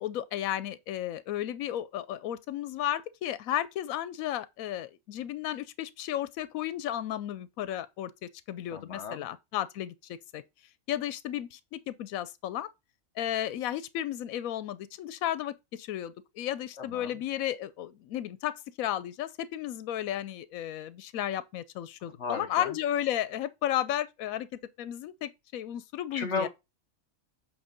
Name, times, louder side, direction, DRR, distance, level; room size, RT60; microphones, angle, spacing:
voice 1, 0.0-10.4 10.9-12.7 13.2-26.5, left 11 dB, 85° left, 1.0 m, -33 dB
voice 2, 8.7-9.3 16.8-17.2 22.2-22.7 26.1-26.5, left 4 dB, 60° left, 1.3 m, -35 dB
8.0 x 3.5 x 5.1 m
omnidirectional pair, 1.4 m